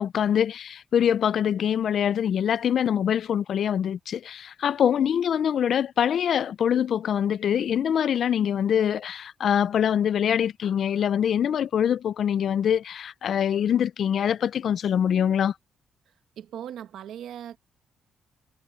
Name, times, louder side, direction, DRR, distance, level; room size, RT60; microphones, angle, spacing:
voice 1, 0.0-15.5, left 9 dB, 60° left, 0.4 m, -24 dB
voice 2, 16.4-17.6, right 10 dB, 80° right, 1.4 m, -38 dB
cardioid pair, 125°, 0 cm